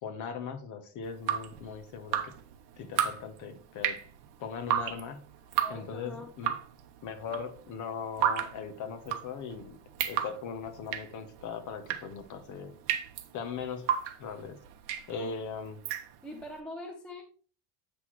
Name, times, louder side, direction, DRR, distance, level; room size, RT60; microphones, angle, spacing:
voice 1, 0.0-2.3 2.8-4.0 4.4-5.2 5.7-6.5 7.0-9.8 10.0-13.0 13.3-13.9 14.2-14.6 15.1-15.8, left 6 dB, 40° left, 8 dB, 1.0 m, -39 dB
Drip, 1.0-16.5, right 10 dB, 55° right, 0.9 m, -34 dB
voice 2, 5.6-6.3 15.1-15.3 16.2-17.2, left 1 dB, ahead, 2 dB, 0.3 m, -43 dB
8.2 x 6.0 x 3.1 m, 0.42 s
cardioid pair, 170°, 47 cm